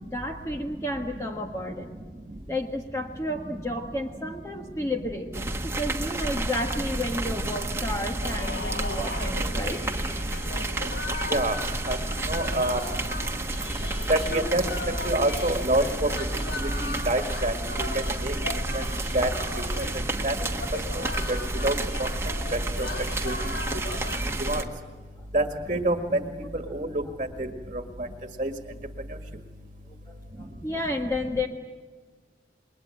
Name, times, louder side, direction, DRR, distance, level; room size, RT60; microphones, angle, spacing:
voice 1, 0.0-1.9 2.5-9.8 30.1-31.5, left 1 dB, 15° left, 2 dB, 1.5 m, -32 dB
sound 1, 5.3-24.6, right 2 dB, 15° right, 1.5 m, -30 dB
sound 2, 8.2-24.6, left 3 dB, 75° left, 3.7 m, -38 dB
voice 2, 12.3-12.8 14.1-14.6 15.1-16.1 16.6-17.5 18.2-18.3 18.7-18.8 19.1-19.3 20.2-20.3 21.3-21.4 21.6-22.1 22.5-22.6 23.2-23.3 24.4-24.6 25.3-26.2 26.5-27.0 27.4-27.5 28.4-28.5, right 1 dB, 35° right, 6 dB, 1.9 m, -26 dB
29.0 x 22.0 x 9.1 m, 1.5 s
head